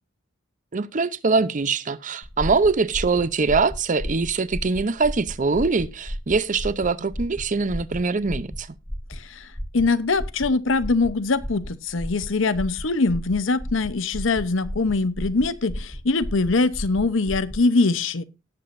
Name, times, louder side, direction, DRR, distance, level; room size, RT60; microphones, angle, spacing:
voice 1, 0.7-8.7, right 4 dB, 40° right, 0.6 m, -23 dB
sound 1, 2.2-17.7, equal, 5° left, 1.3 m, -34 dB
voice 2, 9.7-18.2, left 3 dB, 70° left, 0.8 m, -22 dB
18.0 x 7.8 x 2.6 m
head